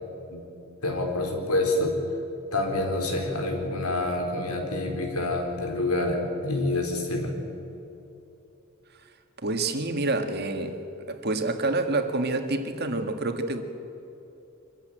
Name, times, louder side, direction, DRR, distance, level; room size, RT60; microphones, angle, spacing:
voice 1, 0.8-2.0 2.5-7.3, left 2 dB, 90° left, 4.3 m, -27 dB
voice 2, 9.4-13.6, right 2 dB, 45° right, 1.8 m, -28 dB
24.5 x 15.0 x 9.1 m
head